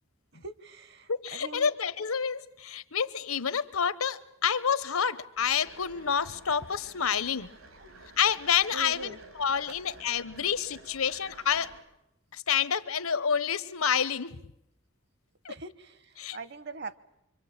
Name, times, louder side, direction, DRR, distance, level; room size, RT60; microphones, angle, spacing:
voice 1, 0.4-1.7 7.8-8.0 8.7-9.2 15.5-17.0, right 3 dB, 55° right, 15 dB, 1.1 m, -42 dB
voice 2, 1.1-7.5 8.2-11.7 12.3-14.4 15.4-15.5 16.2-16.4, left 7 dB, 85° left, 15 dB, 1.1 m, -28 dB
sound 1, 5.4-11.8, right 2 dB, 80° right, 3.9 m, -52 dB
25.0 x 25.0 x 8.8 m, 0.83 s
head